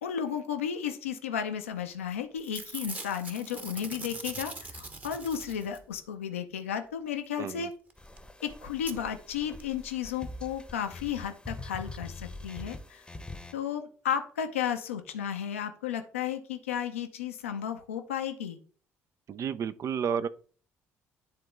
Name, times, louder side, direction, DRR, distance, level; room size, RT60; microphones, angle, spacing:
voice 1, 0.0-7.7 8.4-13.0 13.5-18.6, left 8 dB, 80° left, 0.6 m, -33 dB
Packing tape duct tape / Tearing, 1.9-2.1 2.4-6.0 7.9-8.2 8.9-9.0 9.6-9.7 9.9-10.0, right 2 dB, 20° right, 1.0 m, -42 dB
voice 2, 7.4-7.7 19.3-20.3, right 7 dB, 45° right, 0.5 m, -31 dB
sound 1, 8.0-13.5, left 2 dB, 10° left, 0.9 m, -44 dB
10.5 x 3.7 x 3.3 m
figure-of-eight pair, 50°, 7 cm